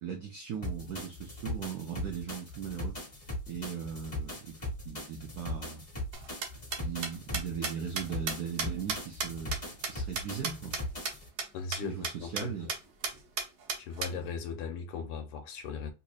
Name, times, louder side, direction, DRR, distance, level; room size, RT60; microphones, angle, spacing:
voice 1, 0.0-3.0 3.5-5.9 6.8-9.6 9.9-10.8 11.8-12.7, right 7 dB, 80° right, 0.8 m, -38 dB
sound 1, 0.6-11.3, left 1 dB, 20° left, 1.9 m, -39 dB
sound 2, 6.1-10.8 11.1-11.2 11.4-11.5 11.7-11.8 12.0-12.4 12.7-12.8 13.0-14.1, right 5 dB, 60° right, 1.2 m, -33 dB
voice 2, 11.5-12.7 13.8-15.9, left 5 dB, 85° left, 1.8 m, -38 dB
4.1 x 2.9 x 2.4 m
omnidirectional pair, 2.4 m